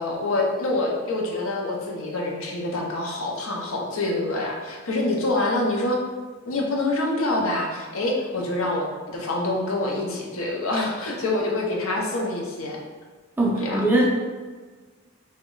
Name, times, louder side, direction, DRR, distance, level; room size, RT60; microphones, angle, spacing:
voice 1, 0.0-6.0 6.5-12.8 13.6-13.8, left 2 dB, 65° left, -1 dB, 0.6 m, -26 dB
voice 2, 13.4-14.1, right 2 dB, 10° right, -4 dB, 0.4 m, -21 dB
3.0 x 2.2 x 3.7 m, 1.4 s
head